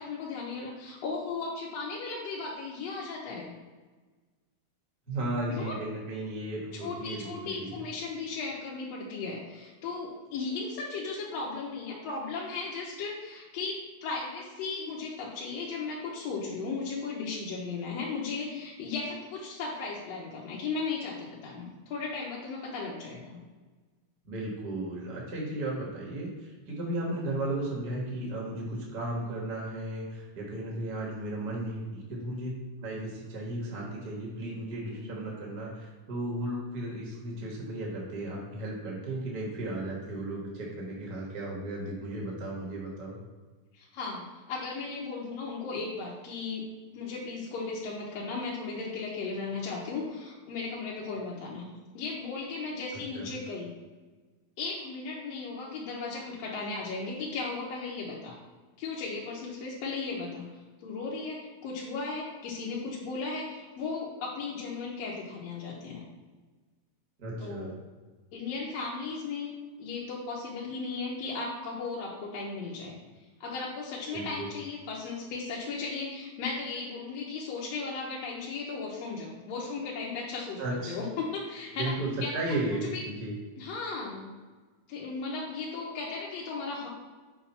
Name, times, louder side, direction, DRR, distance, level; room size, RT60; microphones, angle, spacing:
voice 1, 0.0-3.5 5.5-5.8 6.7-23.4 34.9-35.3 43.7-46.6 46.9-51.7 51.9-53.7 54.6-58.4 58.8-60.5 60.8-66.0 67.4-67.8 68.3-73.0 73.4-81.9 82.2-82.3 82.8-83.0 83.6-84.3 84.9-86.9, left 4 dB, 70° left, -5 dB, 1.9 m, -36 dB
voice 2, 5.1-7.8 24.2-32.5 32.8-43.2 53.1-53.3 67.2-67.7 74.1-74.5 80.6-81.0 81.7-83.3, right 1 dB, 40° right, -3 dB, 1.5 m, -35 dB
7.0 x 2.5 x 5.6 m, 1.3 s
omnidirectional pair, 3.3 m